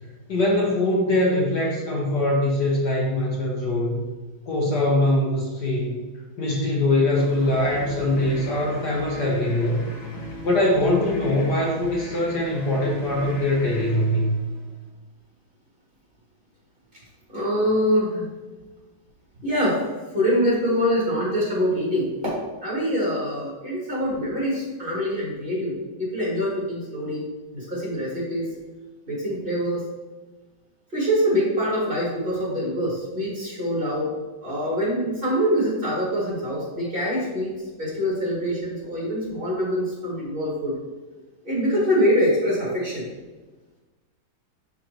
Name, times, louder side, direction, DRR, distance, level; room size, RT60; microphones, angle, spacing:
voice 1, 0.3-4.0 4.5-6.0 6.4-9.9 10.4-14.4, left 1 dB, 60° left, -3 dB, 1.6 m, -22 dB
sound 1, 7.1-14.9, equal, 80° left, 2.2 m, -38 dB
voice 2, 17.3-18.2 19.4-19.8 20.1-22.3 22.6-25.7 26.0-27.2 27.5-28.5 29.1-29.8 30.9-34.1 34.4-37.5 37.8-40.7 41.4-43.1, equal, 25° right, -6 dB, 2.6 m, -24 dB
11.5 x 4.1 x 3.1 m, 1.2 s
omnidirectional pair, 2.2 m